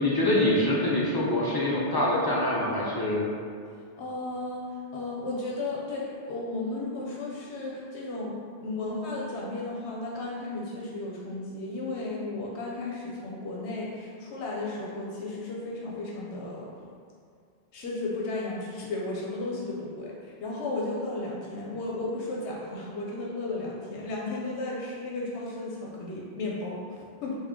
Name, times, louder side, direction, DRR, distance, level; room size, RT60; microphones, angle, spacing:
voice 1, 0.0-3.2, left 1 dB, 40° left, -6 dB, 0.3 m, -25 dB
voice 2, 4.0-4.7 4.9-16.7 17.7-27.4, left 2 dB, 80° left, -4 dB, 0.9 m, -34 dB
3.5 x 2.7 x 3.6 m, 2.2 s
omnidirectional pair, 1.1 m